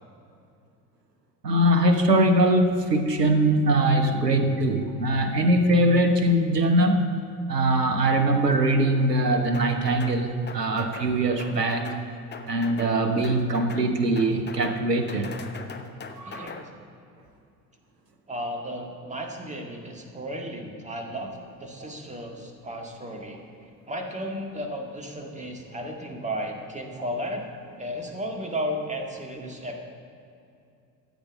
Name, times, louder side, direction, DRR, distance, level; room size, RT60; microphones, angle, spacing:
voice 1, 1.4-7.1 7.5-11.9 12.5-15.3 16.2-16.5, right 1 dB, 85° right, 6 dB, 1.0 m, -22 dB
sound 1, 9.5-10.2 10.5-11.1 11.4-12.0 12.3-12.9 13.2-13.9 14.2-14.8 15.1-16.6, left 5 dB, 20° left, 0.9 m, -40 dB
voice 2, 16.2-16.6 18.3-23.4 23.9-27.5 27.8-29.8, equal, 15° right, 2 dB, 1.9 m, -34 dB
14.0 x 8.2 x 5.2 m, 2.6 s
figure-of-eight pair, 55°, 47 cm